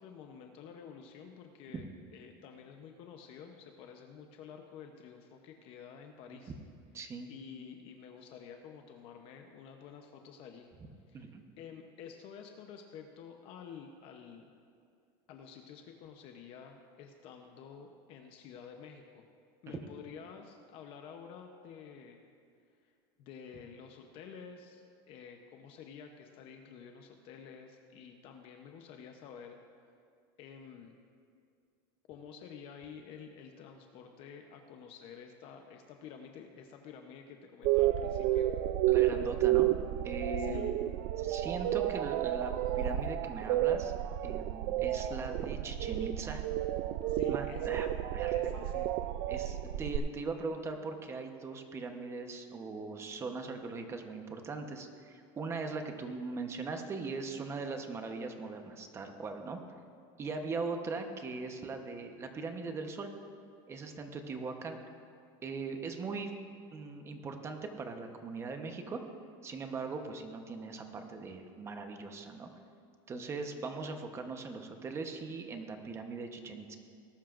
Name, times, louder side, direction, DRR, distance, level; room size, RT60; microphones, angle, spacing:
voice 1, 0.0-6.5 7.3-10.7 11.1-14.5 15.3-19.3 19.6-22.2 22.8-22.9 23.2-29.6 30.4-31.0 32.1-38.5 40.4-40.7 47.1-47.9 48.3-48.9, left 7 dB, 45° left, 4 dB, 0.8 m, -50 dB
voice 2, 6.9-7.3 11.1-11.4 19.7-19.9 38.9-39.7 40.0-40.7 41.2-43.9 44.2-46.4 47.3-47.9 48.1-48.3 49.3-59.6 60.2-63.1 63.7-64.8 65.4-66.3 66.7-69.0 69.4-72.5 73.1-76.8, right 4 dB, 20° right, 5 dB, 1.0 m, -40 dB
sound 1, 37.6-50.0, right 13 dB, 55° right, 0.4 m, -31 dB
19.0 x 12.0 x 2.6 m, 2.4 s
supercardioid pair, 150°, 13 cm